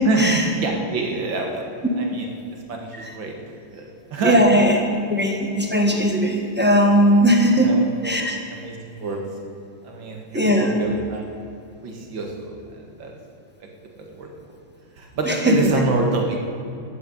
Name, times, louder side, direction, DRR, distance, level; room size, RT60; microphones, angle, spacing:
voice 1, 0.1-1.6 2.0-2.3 2.7-3.4 3.7-4.4 7.6-7.8 8.0-8.2 8.5-9.2 9.8-11.3 11.8-12.6 13.0-13.1 13.6-13.7 14.0-14.3 15.0-16.4, right 3 dB, 75° right, 2 dB, 2.5 m, -26 dB
voice 2, 4.2-4.8 5.1-7.7 8.0-8.4 10.3-10.7 15.3-15.6, equal, 5° right, 1 dB, 1.2 m, -18 dB
12.0 x 8.5 x 9.0 m, 2.6 s
omnidirectional pair, 2.1 m